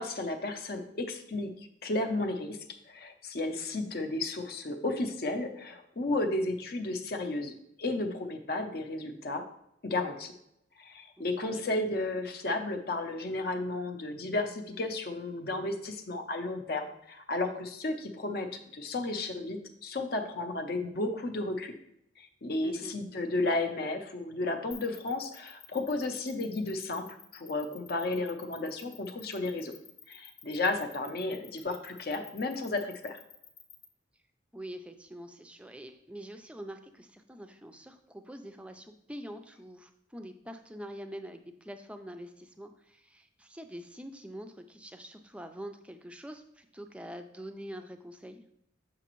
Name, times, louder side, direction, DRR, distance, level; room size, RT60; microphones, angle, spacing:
voice 1, 0.0-2.6 2.9-7.5 7.8-9.4 9.8-10.3 10.8-21.8 22.2-29.7 30.1-33.2, left 2 dB, 55° left, 6 dB, 0.6 m, -33 dB
voice 2, 11.2-11.6 22.6-23.0 34.5-48.4, equal, 5° right, 7 dB, 0.4 m, -45 dB
sound 1, 24.7-33.8, left 7 dB, 90° left, 0.9 m, -51 dB
7.0 x 4.9 x 3.0 m, 0.78 s
head